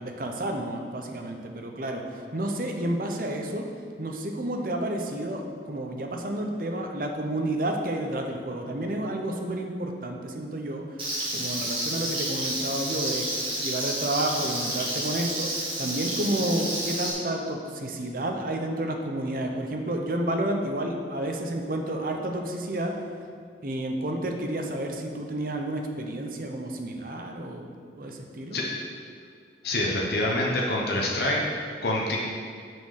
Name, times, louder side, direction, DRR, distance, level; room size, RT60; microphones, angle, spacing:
voice 1, 0.0-3.7 4.0-10.9 11.3-13.3 13.6-23.0 23.6-28.6, right 1 dB, 50° right, 3 dB, 0.7 m, -30 dB
Frying (food), 11.0-17.1, right 1 dB, 30° right, 1.8 m, -30 dB
voice 2, 29.6-31.4 31.8-32.2, left 1 dB, 65° left, -3 dB, 0.9 m, -26 dB
6.3 x 4.5 x 6.5 m, 2.2 s
head